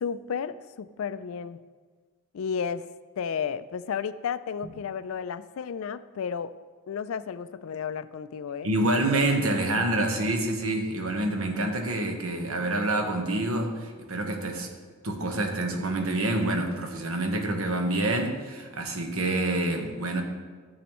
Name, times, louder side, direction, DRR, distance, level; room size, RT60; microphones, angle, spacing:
voice 1, 0.0-1.6 2.3-2.9 3.2-6.5 6.9-8.7, left 7 dB, 75° left, 15 dB, 0.4 m, -32 dB
voice 2, 8.6-14.7 15.0-20.2, right 2 dB, 80° right, 4 dB, 1.2 m, -27 dB
12.5 x 7.1 x 3.1 m, 1.5 s
head